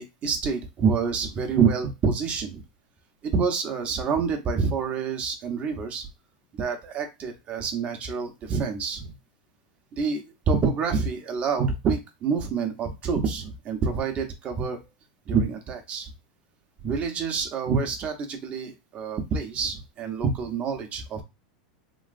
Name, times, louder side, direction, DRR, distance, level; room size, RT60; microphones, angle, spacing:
voice 1, 0.0-2.6 3.2-6.1 6.6-9.1 9.9-14.8 15.3-16.1 16.8-21.2, right 5 dB, 30° right, 4 dB, 0.9 m, -27 dB
3.1 x 2.8 x 2.5 m, 0.23 s
supercardioid pair, 135°, 4 cm